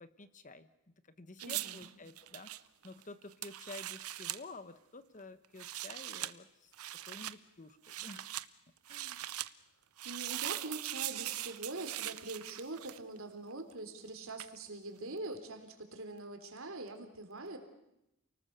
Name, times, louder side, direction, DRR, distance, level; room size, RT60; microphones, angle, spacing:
voice 1, 0.0-6.7 7.0-8.3 8.9-9.2, left 3 dB, 35° left, 12 dB, 1.0 m, -51 dB
voice 2, 1.4-1.9 10.0-17.6, right 2 dB, 70° right, 6 dB, 3.4 m, -43 dB
sound 1, 1.4-4.4 5.4-6.3 6.7-7.4 7.8-8.5 8.9-9.5 10.0-13.2 14.4-14.6, right 14 dB, 90° right, 0.8 m, -41 dB
29.0 x 19.0 x 6.7 m, 0.85 s
head